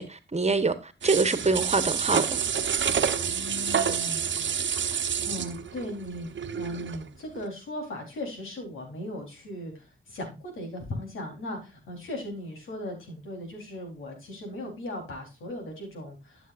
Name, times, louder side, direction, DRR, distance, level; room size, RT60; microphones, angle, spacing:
voice 1, 0.0-2.4, right 3 dB, 35° right, 1.3 m, -25 dB
sound 1, 1.0-7.0 7.4-7.5, right 7 dB, 70° right, 1.1 m, -28 dB
voice 2, 3.1-4.3 5.0-6.3 6.5-16.5, left 1 dB, 85° left, 4.2 m, -38 dB
12.5 x 7.1 x 2.6 m
cardioid pair, 55°, 20 cm